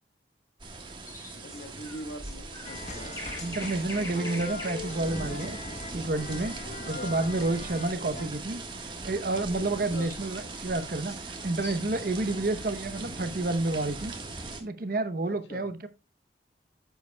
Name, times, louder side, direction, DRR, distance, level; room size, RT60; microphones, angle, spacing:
sound 1, 0.6-14.6, right 3 dB, 25° right, 1.4 m, -40 dB
sound 2, 1.0-6.1 9.6-12.0, left 2 dB, 15° left, 1.7 m, -45 dB
voice 1, 1.3-3.2 6.7-7.2 9.9-10.1 12.2-12.4 15.3-15.7, equal, 70° left, 1.4 m, -43 dB
sound 3, 2.6-8.2, left 4 dB, 40° left, 1.0 m, -42 dB
voice 2, 3.4-5.6 5.9-6.5 6.8-8.6 9.0-11.1 11.4-14.1 14.6-15.9, right 2 dB, 55° right, 0.8 m, -29 dB
9.3 x 8.0 x 2.2 m
head